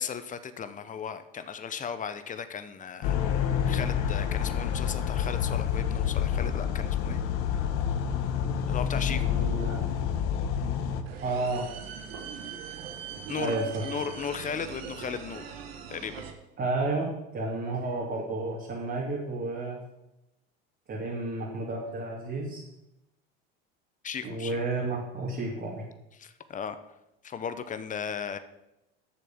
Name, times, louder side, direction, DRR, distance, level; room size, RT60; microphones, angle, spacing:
voice 1, 0.0-7.2 7.5-7.6 8.7-9.2 13.3-15.5 15.9-16.2 24.0-24.6 26.2-26.8 27.2-28.4, left 7 dB, 25° left, 11 dB, 1.0 m, -36 dB
sound 1, 3.0-11.0, left 8 dB, 65° left, 1.3 m, -28 dB
voice 2, 9.1-9.8 11.2-11.7 13.4-13.8 16.6-19.8 20.9-22.6 24.2-25.8, right 2 dB, 35° right, -4 dB, 3.0 m, -31 dB
sound 2, 11.1-16.3, right 7 dB, 85° right, 1.6 m, -41 dB
11.0 x 7.0 x 6.2 m, 0.91 s
hypercardioid pair, 90°, 30 cm